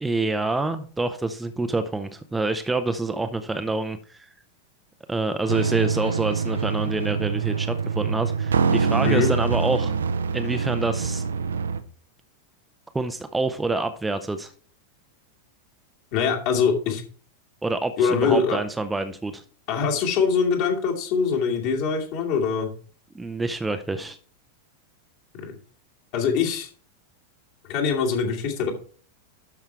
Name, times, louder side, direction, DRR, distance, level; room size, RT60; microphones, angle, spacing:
voice 1, 0.0-4.3 5.1-10.0 10.3-11.2 12.9-14.5 17.6-19.4 23.1-24.2, right 2 dB, 10° right, 9 dB, 0.6 m, -27 dB
sound 1, 5.5-11.8, right 5 dB, 70° right, 0.7 m, -25 dB
voice 2, 16.1-17.0 18.0-18.6 19.7-22.7 25.3-25.5 26.1-26.7 27.7-28.7, left 6 dB, 45° left, 0 dB, 2.5 m, -23 dB
12.0 x 5.8 x 3.4 m, 0.43 s
figure-of-eight pair, 90°, 0 cm